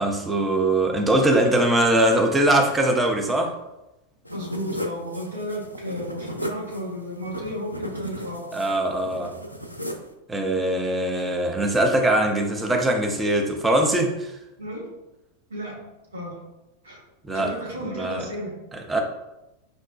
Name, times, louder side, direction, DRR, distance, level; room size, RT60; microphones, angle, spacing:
voice 1, 0.0-3.5 8.5-9.3 10.3-14.4 17.2-17.5 17.8-18.2 18.7-19.0, right 1 dB, 10° right, 2 dB, 0.5 m, -22 dB
sound 1, 4.2-10.1, equal, 90° left, 0.3 m, -36 dB
voice 2, 4.3-8.5 14.6-14.9 15.5-15.8 16.1-16.4 16.8-17.0 17.3-18.6, equal, 70° right, -5 dB, 1.2 m, -33 dB
5.0 x 2.2 x 2.3 m, 0.95 s
figure-of-eight pair, 90°, 0 cm